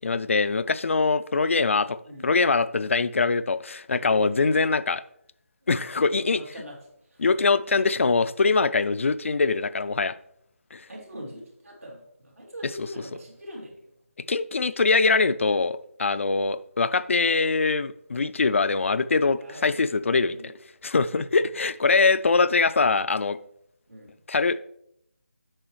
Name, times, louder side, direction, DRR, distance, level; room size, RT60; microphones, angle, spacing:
voice 1, 0.0-2.0 2.2-5.0 5.7-6.4 7.2-10.1 10.7-10.8 14.3-20.5 20.8-23.4 24.3-24.6, left 4 dB, 60° left, 0.4 m, -23 dB
voice 2, 5.6-7.2 10.9-13.9 19.4-19.8 20.1-20.5 23.9-24.2, equal, 80° right, 3.2 m, -42 dB
8.8 x 6.1 x 3.1 m
figure-of-eight pair, 160°, 8 cm